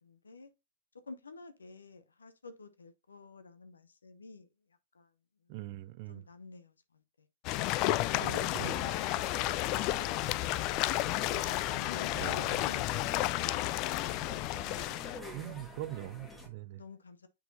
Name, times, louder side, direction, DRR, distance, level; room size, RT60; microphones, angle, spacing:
voice 1, 0.0-0.5 1.1-4.5 4.9-5.1 6.1-7.0 8.1-8.4 11.3-13.7 16.8-17.3, left 3 dB, 80° left, 0.7 m, -50 dB
voice 2, 5.5-6.3 8.2-8.9 12.1-12.7 15.3-16.8, right 16 dB, 45° right, 0.4 m, -42 dB
sound 1, 7.4-15.2, left 16 dB, 40° left, 0.3 m, -32 dB
sound 2, 8.0-16.5, left 1 dB, 10° left, 1.5 m, -48 dB
9.0 x 3.9 x 2.6 m
figure-of-eight pair, 110°, 0 cm